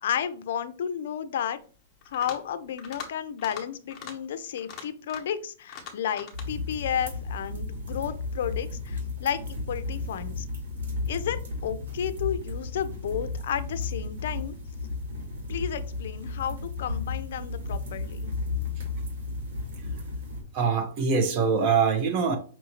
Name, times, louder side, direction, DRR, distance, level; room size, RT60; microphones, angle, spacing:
voice 1, 0.0-1.6 2.1-10.4 11.1-14.5 15.5-18.3, left 9 dB, 60° left, 0.4 m, -32 dB
sound 1, 2.0-2.5 2.8-3.1 3.4-3.6 3.9-4.1 4.6-5.4 5.7-6.5, left 7 dB, 20° left, 0.9 m, -41 dB
sound 2, 6.3-20.4, left 3 dB, 75° right, 1.9 m, -34 dB
voice 2, 20.5-22.4, right 5 dB, 35° right, 0.7 m, -23 dB
5.4 x 2.6 x 2.9 m
supercardioid pair, 170°, 0 cm